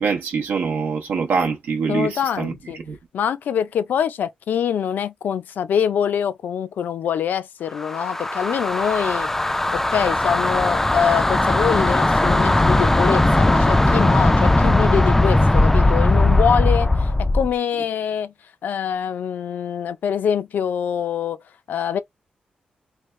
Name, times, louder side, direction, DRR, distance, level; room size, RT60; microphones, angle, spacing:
voice 1, 0.0-2.5 2.9-3.0, right 5 dB, 80° right, 0.7 m, -24 dB
voice 2, 1.9-2.8 3.1-9.3 9.7-18.3 18.6-21.4 21.7-22.0, left 8 dB, 80° left, 0.5 m, -24 dB
sound 1, 7.8-17.5, left 2 dB, 10° left, 0.3 m, -18 dB
3.3 x 2.3 x 3.1 m
cardioid pair, 90°, 3 cm